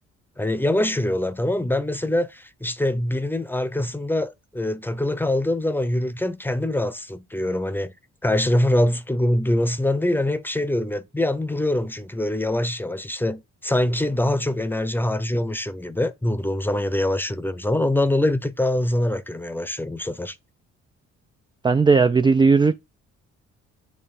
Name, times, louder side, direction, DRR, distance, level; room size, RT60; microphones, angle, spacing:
voice 1, 0.4-7.9 8.2-20.4, left 1 dB, 5° left, 0.8 m, -24 dB
voice 2, 21.6-22.7, right 4 dB, 15° right, 0.4 m, -16 dB
8.7 x 3.2 x 4.2 m
cardioid pair, 90°, 30 cm